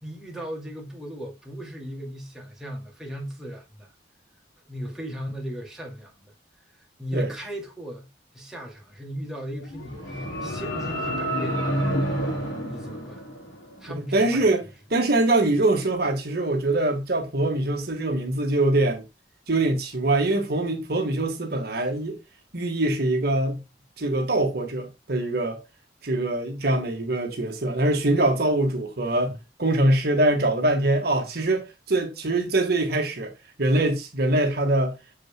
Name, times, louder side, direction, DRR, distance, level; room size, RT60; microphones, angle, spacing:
voice 1, 0.0-3.9 4.6-6.3 6.8-8.1 8.3-12.0 12.7-13.3 13.8-14.5, equal, ahead, 2.3 m, -37 dB
sound 1, 9.6-13.8, equal, 85° left, 4.9 m, -29 dB
voice 2, 13.9-14.6 14.9-19.0 19.5-22.2 22.5-23.6 24.0-25.6 26.0-33.3 33.6-35.0, right 2 dB, 55° right, 1.5 m, -23 dB
7.1 x 6.5 x 2.2 m
head